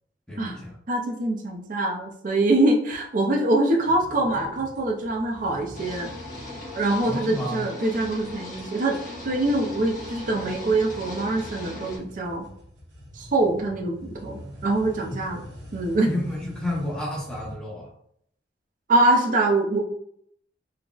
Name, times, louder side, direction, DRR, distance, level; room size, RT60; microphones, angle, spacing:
voice 1, 0.3-0.8 7.0-7.7 16.0-17.9, left 1 dB, 5° left, -6 dB, 0.7 m, -31 dB
voice 2, 0.9-6.1 6.7-9.0 9.2-12.5 13.1-15.4 15.7-16.1 18.9-19.8, right 2 dB, 45° right, 0 dB, 0.4 m, -24 dB
sound 1, 3.8-17.6, equal, 65° right, 0.8 m, -44 dB
sound 2, 5.7-12.0, left 2 dB, 45° left, 1.0 m, -39 dB
3.8 x 2.0 x 2.3 m, 0.68 s
head